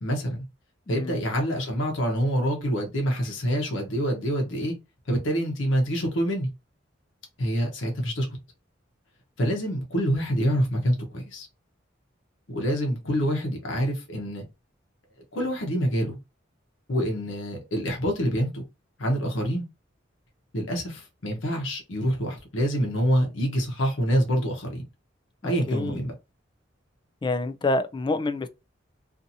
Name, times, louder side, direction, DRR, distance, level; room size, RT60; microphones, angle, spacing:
voice 1, 0.0-0.4 0.9-4.7 5.1-6.5 7.4-8.3 9.4-11.5 12.5-14.4 15.3-16.2 16.9-18.6 19.0-19.6 20.5-24.8 25.4-26.1, equal, 80° left, 0.9 m, -26 dB
voice 2, 0.9-1.2 25.7-26.0 27.2-28.5, left 2 dB, 25° left, 0.3 m, -27 dB
2.7 x 2.6 x 2.6 m
head